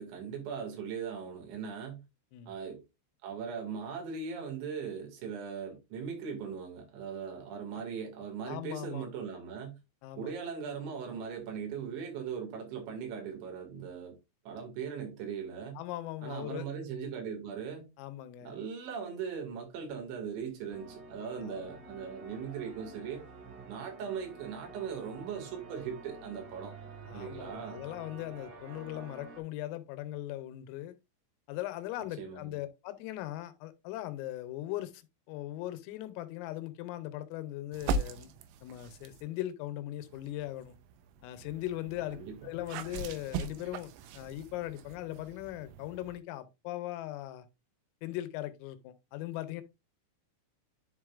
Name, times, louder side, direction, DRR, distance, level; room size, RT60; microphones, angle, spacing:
voice 1, 0.0-2.0 2.5-2.8 3.2-9.8 10.2-14.2 14.5-15.8 16.2-17.9 18.4-23.3 23.7-26.8 27.1-27.8 32.2-32.6 42.1-42.4, right 6 dB, 65° right, 4.2 m, -39 dB
voice 2, 8.5-9.1 10.0-10.3 15.8-16.7 18.0-18.6 21.4-21.8 27.1-30.9 31.5-38.3 38.6-40.8 41.2-42.2 42.4-47.5 48.0-49.6, left 14 dB, 85° left, 3.4 m, -39 dB
sound 1, 20.7-29.4, right 3 dB, 45° right, 2.5 m, -49 dB
sound 2, 37.7-39.3 40.0-46.2, right 3 dB, 85° right, 2.7 m, -40 dB
10.5 x 5.3 x 2.4 m
omnidirectional pair, 6.0 m